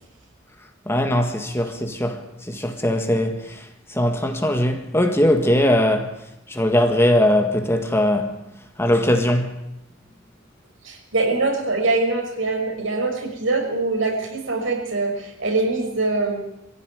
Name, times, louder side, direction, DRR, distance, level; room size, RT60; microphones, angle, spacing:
voice 1, 0.9-2.2 2.5-3.4 4.0-6.1 6.5-8.3 8.8-9.6, left 1 dB, 10° left, 1.7 m, -20 dB
voice 2, 10.8-16.4, right 3 dB, 70° right, 5.8 m, -23 dB
22.5 x 15.5 x 9.5 m
head